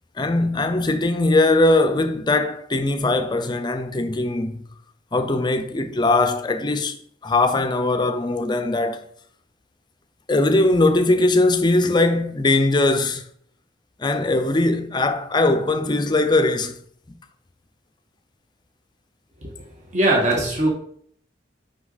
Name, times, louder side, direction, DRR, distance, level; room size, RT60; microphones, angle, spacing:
voice 1, 0.2-4.6 5.1-7.0 7.2-9.0 10.3-13.2 14.0-16.8, left 2 dB, 25° left, 0.6 m, -20 dB
voice 2, 19.9-20.7, right 1 dB, 40° right, 1.4 m, -19 dB
6.0 x 5.3 x 4.0 m
head